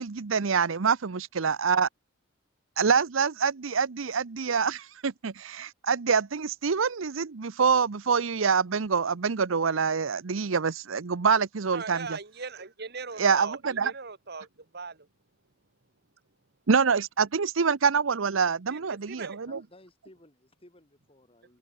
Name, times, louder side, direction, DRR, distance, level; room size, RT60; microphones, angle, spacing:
voice 1, 0.0-1.9 2.8-12.2 13.2-13.9 16.7-19.6, right 5 dB, 90° right, 0.7 m, -26 dB
voice 2, 11.7-14.5 14.7-15.1 18.7-19.4, right 4 dB, 55° right, 1.8 m, -39 dB
voice 3, 19.4-21.6, left 1 dB, 30° left, 7.3 m, -56 dB
head